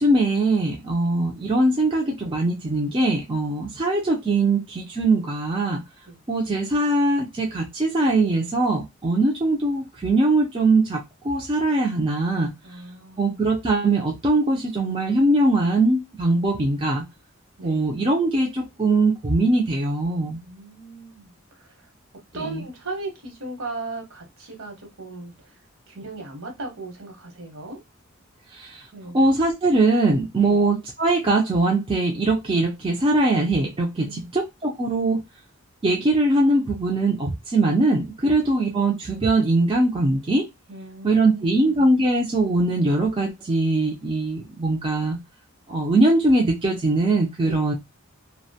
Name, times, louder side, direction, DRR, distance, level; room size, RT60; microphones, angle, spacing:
voice 1, 0.0-5.8 6.3-12.5 13.2-17.0 17.6-20.4 22.3-22.6 28.5-28.9 29.1-35.2 35.8-40.5 41.0-45.2 45.7-47.7, right 2 dB, 25° right, 0 dB, 0.4 m, -21 dB
voice 2, 12.6-13.4 17.6-17.8 20.4-21.3 21.6-21.7 22.3-25.3 25.9-27.8 28.9-29.2 30.4-30.6 34.0-34.3 38.2-38.4 40.7-41.9 47.5-47.6, right 2 dB, 70° right, 2 dB, 0.9 m, -37 dB
2.5 x 2.1 x 2.6 m, 0.21 s
head